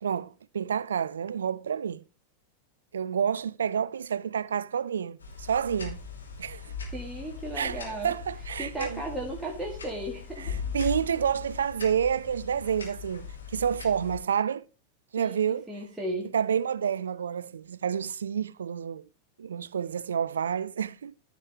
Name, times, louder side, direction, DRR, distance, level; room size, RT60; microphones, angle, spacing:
voice 1, 0.0-2.0 2.9-6.0 6.4-6.7 7.6-9.0 10.4-14.6 15.1-15.7 16.3-19.1 19.4-21.1, right 8 dB, 70° right, 0.3 m, -29 dB
sound 1, 5.2-14.2, left 6 dB, 70° left, 2.7 m, -39 dB
voice 2, 6.9-8.1 8.6-10.5 15.2-15.4 15.7-16.3, right 1 dB, 5° right, 1.7 m, -35 dB
14.5 x 5.2 x 3.3 m
figure-of-eight pair, 90°, 0 cm